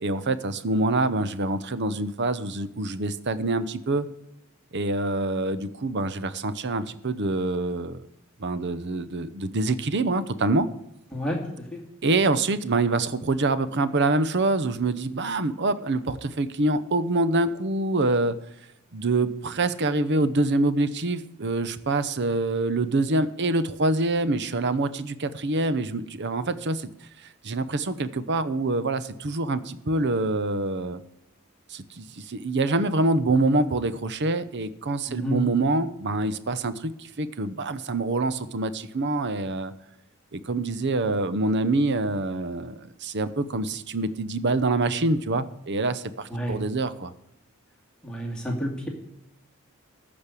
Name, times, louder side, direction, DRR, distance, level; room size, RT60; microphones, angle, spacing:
voice 1, 0.0-4.1 4.7-8.0 8.4-10.7 12.0-18.4 18.9-26.9 27.2-31.0 31.7-39.7 40.3-47.1, right 2 dB, 55° right, 14 dB, 0.8 m, -25 dB
voice 2, 11.1-11.8 35.1-35.4 46.3-46.6 48.0-48.9, equal, 5° left, -1 dB, 2.3 m, -30 dB
14.0 x 5.3 x 8.3 m, 0.85 s
head